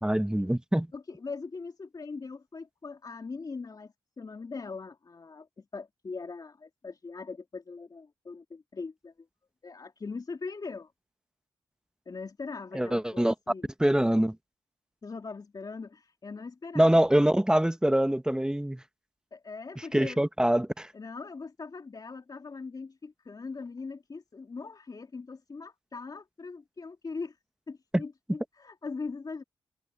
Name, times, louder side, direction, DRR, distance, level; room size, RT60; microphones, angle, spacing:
voice 1, 0.0-0.9 12.7-13.3 13.8-14.3 16.7-18.8 19.9-20.9 27.9-28.0, right 1 dB, 10° right, 1.3 m, -24 dB
voice 2, 0.9-9.3 9.6-10.9 12.0-13.7 15.0-17.0 19.3-20.2 20.9-27.4 27.7-29.4, left 4 dB, 45° left, 3.3 m, -41 dB
cardioid pair, 55°, 9 cm